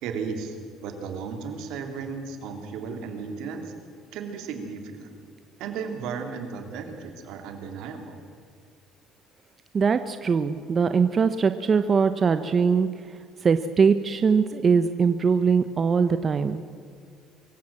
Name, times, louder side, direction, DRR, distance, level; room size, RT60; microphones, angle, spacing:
voice 1, 0.0-3.7 4.1-5.2 5.6-8.1, right 5 dB, 80° right, 5 dB, 3.2 m, -35 dB
voice 2, 9.7-12.9 13.4-16.6, right 5 dB, 40° right, 10 dB, 0.8 m, -21 dB
24.0 x 15.5 x 7.6 m, 2.3 s
cardioid pair, 95°, 0 cm